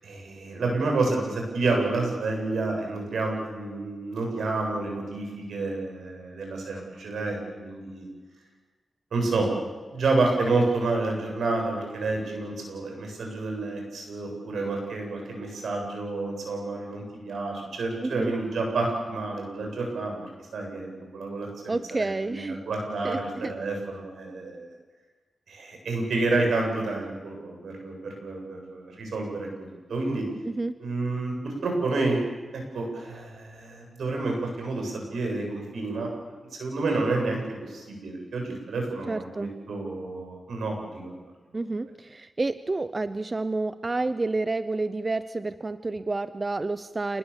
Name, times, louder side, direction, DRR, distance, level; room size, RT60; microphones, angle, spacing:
voice 1, 0.0-8.1 9.1-9.5 9.9-20.3 20.5-24.7 25.5-29.5 29.9-30.3 30.8-32.2 32.5-36.1 36.6-41.1, right 3 dB, 85° right, 2 dB, 7.9 m, -29 dB
voice 2, 21.7-22.6 23.0-23.5 30.5-30.7 39.1-39.5 41.5-47.2, right 3 dB, 35° right, 12 dB, 0.9 m, -29 dB
28.5 x 20.5 x 7.4 m, 1.3 s
cardioid pair, 70°, 0 cm